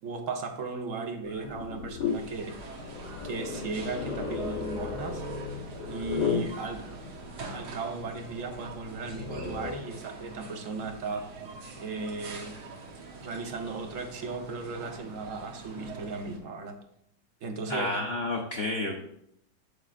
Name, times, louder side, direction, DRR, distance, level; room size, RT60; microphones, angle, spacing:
voice 1, 0.0-2.6 3.2-5.2 5.9-6.8 7.5-11.2 11.8-12.6 13.2-16.8 17.4-17.9, right 4 dB, 55° right, 5 dB, 1.2 m, -36 dB
sound 1, 1.2-9.7, left 6 dB, 85° left, 2.0 m, -36 dB
sound 2, 2.0-16.4, right 3 dB, 75° right, 1.7 m, -44 dB
voice 2, 17.7-19.0, left 2 dB, 55° left, 0 dB, 0.7 m, -30 dB
8.1 x 7.3 x 2.5 m, 0.76 s
omnidirectional pair, 1.8 m